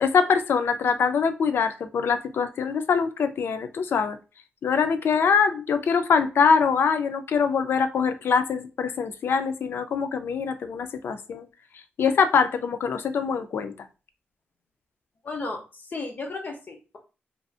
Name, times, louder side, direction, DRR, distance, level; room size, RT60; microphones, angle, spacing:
voice 1, 0.0-4.2 4.6-11.4 12.0-13.7, left 6 dB, 70° left, 9 dB, 0.3 m, -23 dB
voice 2, 15.2-17.0, left 3 dB, 45° left, 3 dB, 0.8 m, -34 dB
2.6 x 2.4 x 2.3 m, 0.32 s
cardioid pair, 95°, 4 cm